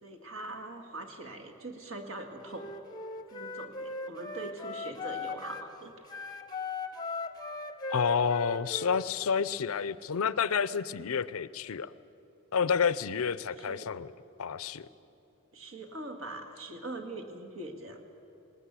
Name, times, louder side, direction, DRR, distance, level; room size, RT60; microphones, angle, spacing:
voice 1, 0.0-2.7 3.3-6.0 13.6-14.0 15.5-18.0, right 2 dB, 60° right, 5 dB, 2.0 m, -42 dB
Wind instrument woodwind instrument, 2.4-5.7 6.0-9.5, left 3 dB, 20° left, 0.8 m, -39 dB
voice 2, 7.9-11.9 12.5-14.1 14.4-14.9, left 6 dB, 70° left, 17 dB, 0.5 m, -29 dB
20.0 x 19.5 x 8.3 m, 2.9 s
head